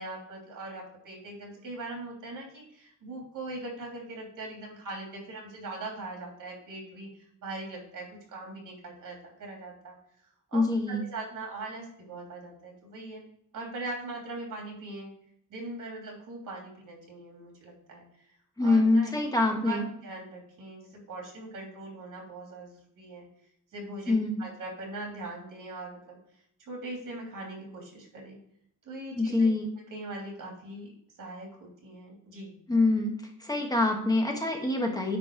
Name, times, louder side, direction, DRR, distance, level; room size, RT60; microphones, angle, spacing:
voice 1, 0.0-7.1 7.4-10.0 10.5-10.6 10.9-13.3 13.5-15.1 15.5-18.0 18.6-19.2 19.5-23.3 23.7-26.2 26.7-28.4 28.8-29.5 29.9-30.9 31.2-32.5, right 2 dB, 75° right, -1 dB, 3.1 m, -41 dB
voice 2, 10.5-11.0 18.6-19.8 24.1-24.3 29.2-29.7 32.7-33.1 33.4-35.2, left 2 dB, 10° left, 1 dB, 1.1 m, -25 dB
10.0 x 4.0 x 4.6 m, 0.71 s
wide cardioid pair, 160°, 32 cm